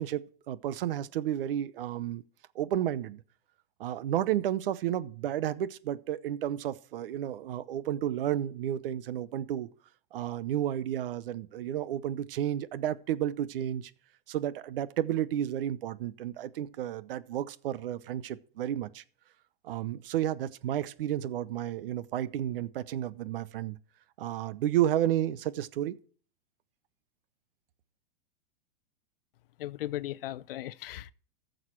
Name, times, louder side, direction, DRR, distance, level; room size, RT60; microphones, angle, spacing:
voice 1, 0.0-2.2 2.5-3.2 3.8-9.7 10.1-13.9 14.3-19.0 19.6-23.8 24.2-25.9, right 11 dB, 70° right, 0.8 m, -32 dB
voice 2, 29.6-31.1, left 14 dB, 70° left, 0.6 m, -37 dB
14.5 x 6.5 x 4.6 m
hypercardioid pair, 150°, 30 cm